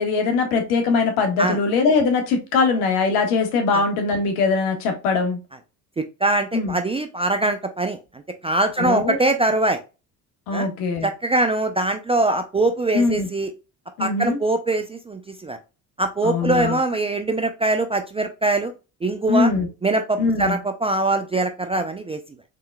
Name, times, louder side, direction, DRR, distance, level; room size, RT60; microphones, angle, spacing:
voice 1, 0.0-5.4 6.5-6.8 8.8-9.2 10.5-11.1 12.9-13.3 14.0-14.4 16.2-16.8 19.3-19.7 20.2-20.6, left 4 dB, 70° left, 5 dB, 1.5 m, -21 dB
voice 2, 6.2-8.0 8.4-9.8 10.5-10.7 11.0-13.5 14.0-15.6 16.0-18.7 19.0-19.5 19.8-22.2, right 2 dB, 15° right, 6 dB, 0.3 m, -22 dB
4.1 x 3.7 x 2.2 m, 0.30 s
hypercardioid pair, 70°, 48 cm